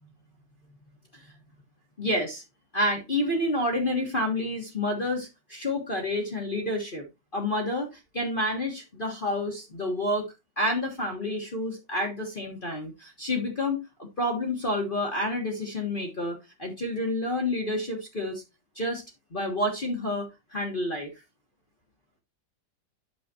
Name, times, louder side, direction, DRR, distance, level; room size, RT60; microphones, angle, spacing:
voice 1, 2.0-2.4 2.7-7.0 7.3-10.3 10.6-13.8 14.2-18.4 18.7-19.0 19.3-21.1, left 1 dB, 30° left, 1.6 m, -29 dB
8.8 x 6.8 x 2.9 m
omnidirectional pair, 1.9 m